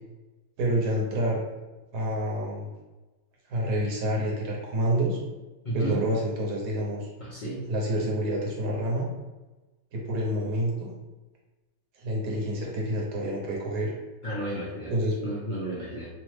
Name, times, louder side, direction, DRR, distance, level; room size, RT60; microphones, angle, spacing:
voice 1, 0.6-1.4 1.9-2.7 3.5-5.2 5.7-7.1 7.7-9.1 9.9-10.9 12.0-13.9 14.9-15.1, right 1 dB, 85° right, -2 dB, 1.3 m, -28 dB
voice 2, 5.6-6.0 7.2-7.7 14.2-14.9 15.2-16.1, right 1 dB, 45° left, -8 dB, 0.6 m, -32 dB
3.1 x 2.1 x 3.1 m, 1.1 s
omnidirectional pair, 1.6 m